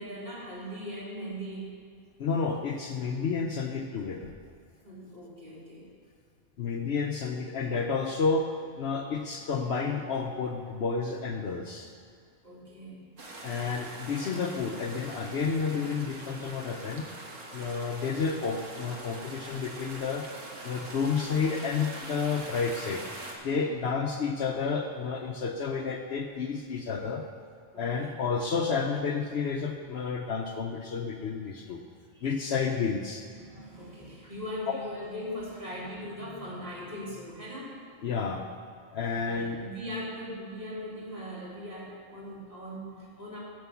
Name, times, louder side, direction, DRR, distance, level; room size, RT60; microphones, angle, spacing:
voice 1, 0.0-1.8 4.8-5.9 12.4-13.0 20.6-20.8 27.7-28.2 32.1-32.4 33.3-37.8 39.3-43.4, equal, 45° right, -6 dB, 2.9 m, -40 dB
voice 2, 2.2-4.3 6.6-11.9 13.4-17.1 17.5-20.3 20.6-23.1 23.4-27.3 27.8-31.8 32.2-33.3 34.7-34.8 38.0-38.5 38.9-39.6, left 5 dB, 60° left, 4 dB, 0.8 m, -30 dB
sound 1, 13.2-23.3, right 2 dB, 70° right, 1.8 m, -43 dB
9.4 x 7.5 x 7.1 m, 2.2 s
omnidirectional pair, 1.4 m